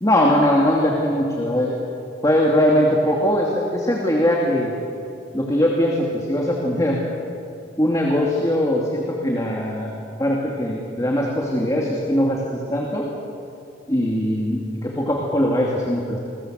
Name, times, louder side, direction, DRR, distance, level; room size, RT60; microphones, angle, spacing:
voice 1, 0.0-1.7 2.2-4.7 5.3-7.0 7.8-9.9 10.2-13.1 13.9-16.2, equal, 20° left, -2 dB, 2.6 m, -21 dB
29.0 x 22.0 x 7.8 m, 2.7 s
head